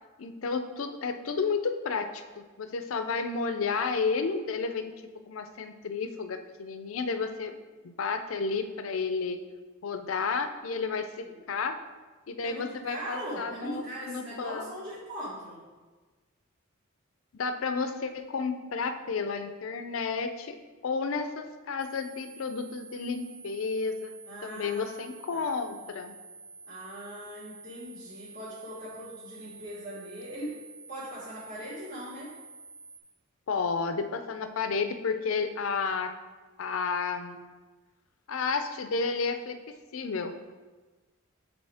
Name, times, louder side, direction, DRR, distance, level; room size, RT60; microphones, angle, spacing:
voice 1, 0.2-4.9 5.3-7.6 7.8-9.4 9.8-11.8 12.3-14.7 17.3-20.6 20.8-24.1 24.4-26.2 33.5-36.1 36.6-37.4 38.3-39.6 39.9-40.3, left 4 dB, 80° left, 8 dB, 0.5 m, -31 dB
voice 2, 10.9-11.4 12.4-15.6 24.3-25.0 25.3-25.9 26.6-30.6 30.9-32.3, right 1 dB, 50° right, -10 dB, 1.6 m, -40 dB
sound 1, 21.8-33.0, right 4 dB, 25° left, 0.6 m, -49 dB
6.9 x 4.0 x 3.5 m, 1.3 s
head